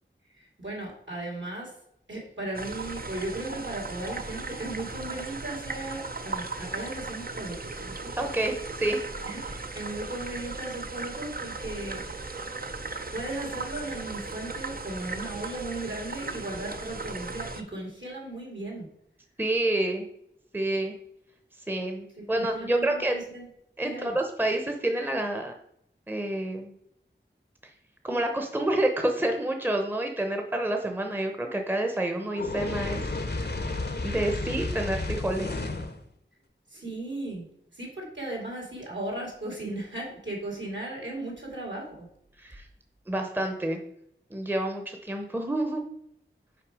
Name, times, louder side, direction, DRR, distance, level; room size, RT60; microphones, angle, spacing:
voice 1, 0.4-1.7 2.1-8.1 9.2-12.0 13.1-18.9 22.2-23.4 23.8-24.2 36.7-37.5 37.7-42.1, right 2 dB, 65° right, -1 dB, 2.3 m, -36 dB
sound 1, 2.5-17.6, right 3 dB, 45° right, 0.6 m, -37 dB
voice 2, 8.2-9.0 19.4-20.1 20.5-20.9 21.7-23.1 23.8-25.5 26.1-26.7 28.0-33.7 34.0-35.6 42.4-42.6 43.1-43.8 44.3-45.8, right 1 dB, 10° right, 3 dB, 0.8 m, -28 dB
Fire, 32.3-36.0, left 2 dB, 55° left, 0.7 m, -32 dB
5.9 x 4.6 x 4.8 m, 0.74 s
wide cardioid pair, 40°, 20 cm